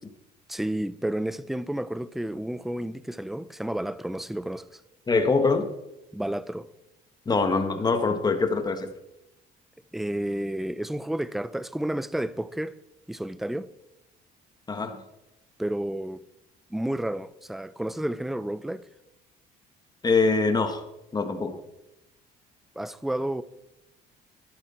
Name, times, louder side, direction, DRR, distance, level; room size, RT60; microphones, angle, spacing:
voice 1, 0.5-4.8 6.1-6.7 9.9-12.8 13.1-13.7 15.6-16.2 16.7-18.9 22.8-23.4, right 1 dB, ahead, 0.5 m, -31 dB
voice 2, 5.1-5.7 7.2-8.9 14.7-15.0 20.0-20.8 21.1-21.5, left 4 dB, 25° left, 1.6 m, -23 dB
12.5 x 11.5 x 4.4 m
cardioid pair, 110°, 17 cm